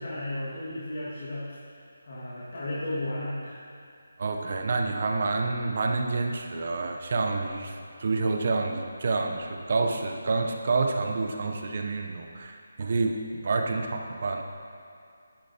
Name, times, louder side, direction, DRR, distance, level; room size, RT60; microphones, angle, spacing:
voice 1, 0.0-1.5 2.0-3.6, left 1 dB, 60° left, -9 dB, 1.8 m, -34 dB
voice 2, 4.2-14.4, right 3 dB, 45° right, 3 dB, 0.7 m, -28 dB
10.0 x 8.4 x 2.8 m, 2.4 s
figure-of-eight pair, 170°, 0 cm